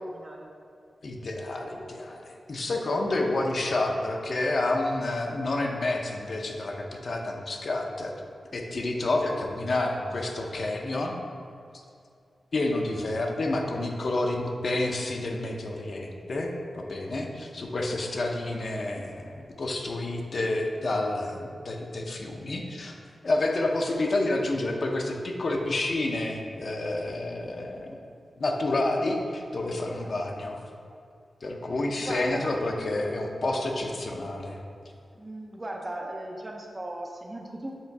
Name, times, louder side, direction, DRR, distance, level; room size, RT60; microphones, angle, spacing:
voice 1, 0.1-0.5 18.7-19.1 29.8-30.4 30.9-31.0 32.0-33.3 35.1-37.8, right 1 dB, 20° right, 1 dB, 0.5 m, -39 dB
voice 2, 1.0-8.1 8.5-11.1 12.5-22.9 23.2-28.0 28.4-30.6 31.4-34.6, left 2 dB, 45° left, 1 dB, 0.6 m, -29 dB
7.3 x 3.1 x 4.5 m, 2.4 s
wide cardioid pair, 165°, 0 cm